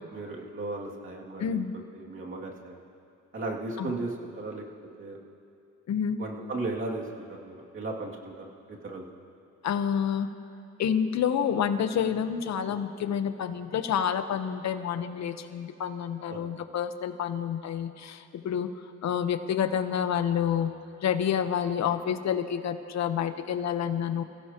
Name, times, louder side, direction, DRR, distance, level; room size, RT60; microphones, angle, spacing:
voice 1, 0.1-1.6 1.9-2.8 3.3-4.6 5.0-5.2 6.2-8.3 8.7-9.0 16.3-16.5, right 2 dB, 40° right, -2 dB, 2.6 m, -36 dB
voice 2, 1.4-1.7 3.8-4.0 5.9-6.2 9.6-10.3 10.8-18.7 19.0-20.7 21.0-24.2, left 8 dB, 65° left, 9 dB, 1.1 m, -28 dB
28.5 x 16.0 x 3.0 m, 2.5 s
cardioid pair, 90°, 30 cm